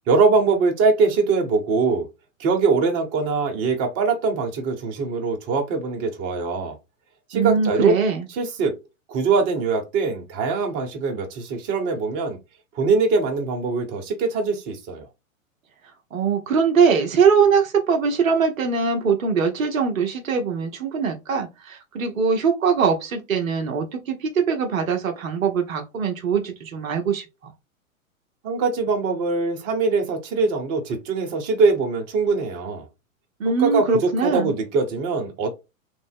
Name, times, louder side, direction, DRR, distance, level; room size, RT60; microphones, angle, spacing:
voice 1, 0.1-2.1 2.4-6.8 7.3-8.0 8.3-8.7 9.1-12.4 12.7-15.1 28.4-32.9 33.6-35.5, right 4 dB, 35° right, 1.2 m, -22 dB
voice 2, 7.3-8.3 16.1-27.2 33.4-34.5, right 6 dB, 75° right, 0.9 m, -22 dB
3.4 x 2.0 x 3.5 m
hypercardioid pair, 110°, 40 cm